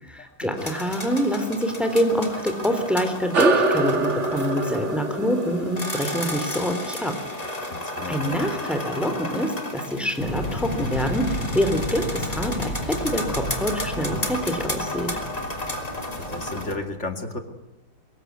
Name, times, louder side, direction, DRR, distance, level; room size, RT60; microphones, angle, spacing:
voice 1, 0.0-7.1 8.1-15.1, equal, ahead, 7 dB, 3.2 m, -25 dB
sound 1, 0.6-16.7, left 1 dB, 20° left, 3.2 m, -33 dB
sound 2, 3.3-8.2, right 3 dB, 40° right, 1.9 m, -26 dB
voice 2, 7.7-8.4 14.1-14.2 16.2-17.4, left 2 dB, 35° left, 5 dB, 2.7 m, -33 dB
sound 3, 10.2-16.8, left 1 dB, 75° left, 5.8 m, -32 dB
24.0 x 21.5 x 9.5 m, 0.98 s
omnidirectional pair, 2.1 m